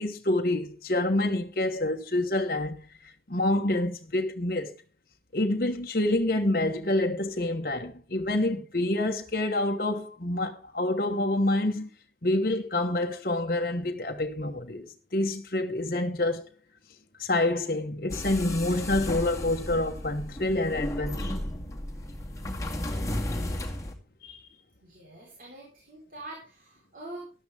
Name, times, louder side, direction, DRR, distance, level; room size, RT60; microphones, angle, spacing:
voice 1, 0.0-2.9 3.3-4.7 5.3-11.9 12.2-16.5 17.2-21.4 24.2-24.5, left 1 dB, 55° left, 1.2 m, -27 dB
sound 1, 18.1-23.9, left 1 dB, 20° left, 2.0 m, -34 dB
voice 2, 24.8-27.3, right 2 dB, 50° right, 4.1 m, -44 dB
14.0 x 11.5 x 3.5 m
head